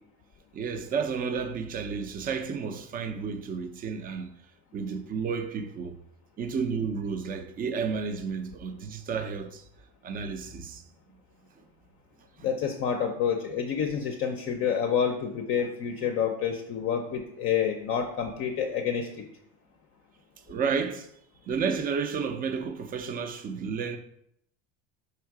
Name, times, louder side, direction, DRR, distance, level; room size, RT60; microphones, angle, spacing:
voice 1, 0.5-4.3 4.7-6.0 6.4-9.6 10.0-10.8 12.4-12.5 13.5-13.6 15.6-15.7 20.5-21.1 21.5-24.0, right 5 dB, 25° right, 0.5 m, -31 dB
voice 2, 12.4-19.2, left 7 dB, 35° left, 0.5 m, -28 dB
5.7 x 3.6 x 4.7 m
cardioid pair, 145°, 37 cm